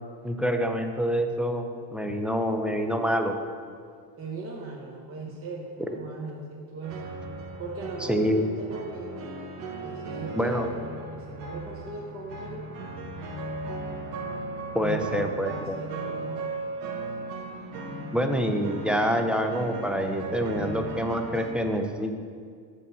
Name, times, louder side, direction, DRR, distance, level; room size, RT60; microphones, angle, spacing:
voice 1, 0.2-3.3 8.1-8.4 10.3-10.7 14.7-15.8 18.1-22.1, equal, ahead, 4 dB, 0.4 m, -26 dB
voice 2, 4.2-7.1 7.6-9.2 9.8-12.6 14.8-16.5, right 3 dB, 30° right, -2 dB, 1.1 m, -38 dB
sound 1, 6.8-21.5, right 2 dB, 85° right, 1.2 m, -37 dB
6.8 x 5.2 x 5.4 m, 2.1 s
supercardioid pair, 100°, 45 cm